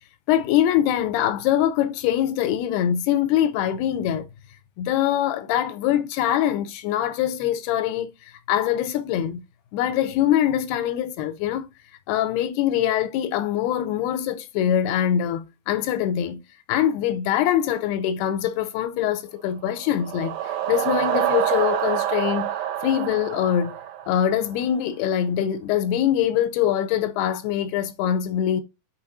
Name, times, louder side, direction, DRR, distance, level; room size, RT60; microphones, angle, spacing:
voice 1, 0.3-4.3 4.8-9.4 9.7-11.7 12.1-16.4 16.7-20.4 20.7-22.5 22.8-23.8 24.1-28.6, left 10 dB, 85° left, 2.7 m, -23 dB
sound 1, 19.7-24.6, right 11 dB, 70° right, 2.1 m, -27 dB
7.1 x 4.8 x 4.1 m
omnidirectional pair, 4.6 m